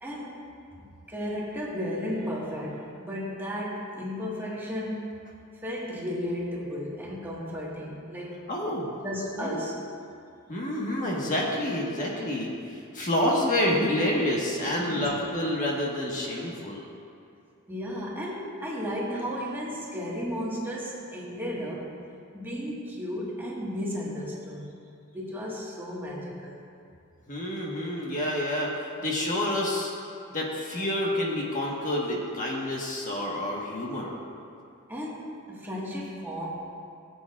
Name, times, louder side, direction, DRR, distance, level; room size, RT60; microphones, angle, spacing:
voice 1, 0.0-5.2 5.5-8.5 9.0-9.8 14.8-15.1 17.7-22.0 22.3-24.7 25.1-26.7 34.9-36.5, equal, 10° right, -6 dB, 1.5 m, -34 dB
voice 2, 8.5-8.9 9.4-9.6 10.5-16.8 27.3-28.7 29.0-29.9 30.3-34.1, left 1 dB, 40° left, -3 dB, 1.4 m, -28 dB
18.5 x 8.3 x 2.4 m, 2.5 s
head